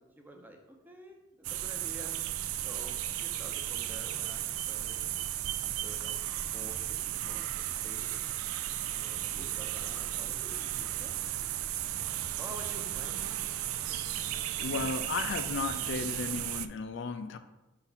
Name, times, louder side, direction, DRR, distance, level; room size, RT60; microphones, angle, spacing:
voice 1, 0.0-2.2 2.6-5.1 5.6-6.2 6.5-7.5 7.8-8.2 8.9-11.4 12.4-13.2, equal, 10° right, 2 dB, 0.7 m, -49 dB
sound 1, 1.4-16.7, right 12 dB, 80° right, 0.4 m, -35 dB
voice 2, 14.6-17.4, left 4 dB, 55° left, 9 dB, 0.4 m, -34 dB
5.8 x 5.8 x 4.0 m, 1.1 s
head